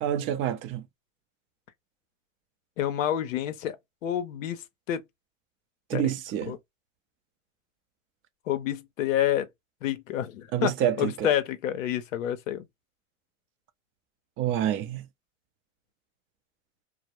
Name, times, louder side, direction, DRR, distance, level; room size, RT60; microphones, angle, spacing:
voice 1, 0.0-0.8 5.9-6.6 10.5-11.3 14.4-15.1, right 10 dB, 35° right, 0.4 m, -27 dB
voice 2, 2.8-3.8 4.0-5.0 5.9-6.1 6.5-6.6 8.5-9.5 9.8-10.7 11.0-12.7, left 11 dB, 90° left, 0.6 m, -28 dB
2.1 x 2.0 x 2.8 m
hypercardioid pair, 105°, 38 cm